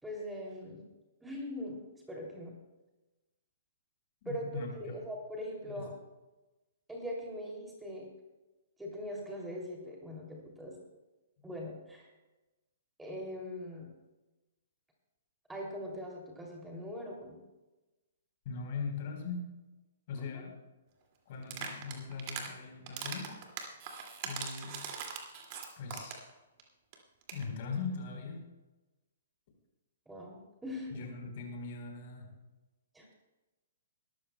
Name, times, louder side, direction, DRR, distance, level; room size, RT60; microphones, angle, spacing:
voice 1, 0.0-0.8 1.2-1.8 2.1-2.5 4.2-5.9 6.9-8.1 8.8-10.7 11.4-12.1 13.0-13.9 15.5-17.4 20.2-20.3 30.1-31.1 32.9-33.1, equal, 5° right, -1 dB, 2.7 m, -41 dB
voice 2, 4.2-5.0 5.6-5.7 18.4-19.5 20.1-20.5 21.3-23.4 24.2-24.8 25.8-26.2 27.3-28.4 30.9-32.3, left 4 dB, 45° left, 2 dB, 3.9 m, -40 dB
sound 1, 21.4-22.5 22.9-26.3 26.6-26.7 26.9-27.0 27.2-27.4, right 7 dB, 40° right, 2.3 m, -41 dB
21.0 x 13.0 x 2.2 m, 1.1 s
figure-of-eight pair, 120°, 0 cm